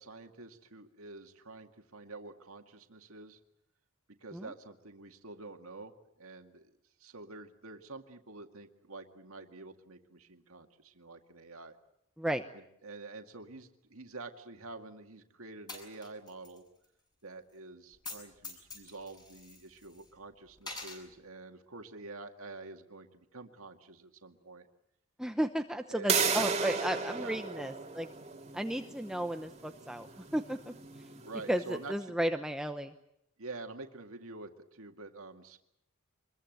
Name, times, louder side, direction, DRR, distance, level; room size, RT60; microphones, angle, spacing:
voice 1, 0.0-3.4 4.2-6.7 7.0-11.7 12.5-16.6 17.2-24.7 25.9-26.5 27.1-27.4 31.2-32.2 33.4-35.6, right 3 dB, 70° right, 5 dB, 2.1 m, -48 dB
Coin (dropping), 15.7-16.6 16.8-16.9 17.9-18.2 18.4-20.1 20.6-21.0, left 3 dB, 20° left, 7.6 m, -45 dB
voice 2, 25.2-28.1 28.5-30.1 30.3-30.7 31.5-32.9, right 1 dB, 5° right, 6 dB, 0.9 m, -33 dB
sound 1, 26.1-31.7, right 5 dB, 30° right, 2.4 m, -35 dB
25.0 x 22.5 x 8.0 m, 0.79 s
head